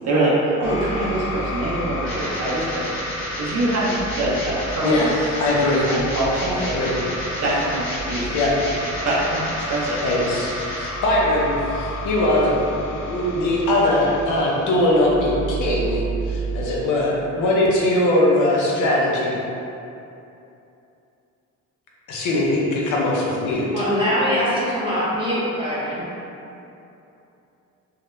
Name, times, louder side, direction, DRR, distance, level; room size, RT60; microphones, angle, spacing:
voice 1, 0.0-3.9 4.2-5.1 5.5-6.6 7.4-8.3 9.0-10.0, right 1 dB, 55° right, -6 dB, 0.6 m, -24 dB
sound 1, 0.6-16.6, equal, 45° left, 0.8 m, -30 dB
voice 2, 5.4-5.9 6.5-6.9 8.3-8.6 10.0-10.5 10.8-12.6 13.0-19.4 22.1-23.7, left 1 dB, 80° left, -4 dB, 0.6 m, -21 dB
voice 3, 23.7-26.0, equal, 15° right, -10 dB, 0.9 m, -22 dB
2.3 x 2.1 x 3.0 m, 2.8 s
cardioid pair, 90°, 30 cm